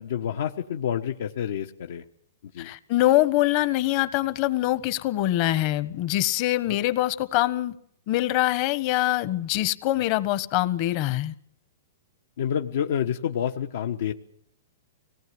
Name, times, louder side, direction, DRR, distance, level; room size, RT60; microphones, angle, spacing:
voice 1, 0.0-2.0 2.5-2.7 12.4-14.1, left 9 dB, 70° left, 5 dB, 1.3 m, -28 dB
voice 2, 2.6-7.7 8.1-11.3, left 15 dB, 40° left, 13 dB, 1.4 m, -24 dB
25.5 x 18.5 x 8.0 m, 0.71 s
hypercardioid pair, 150°, 0 cm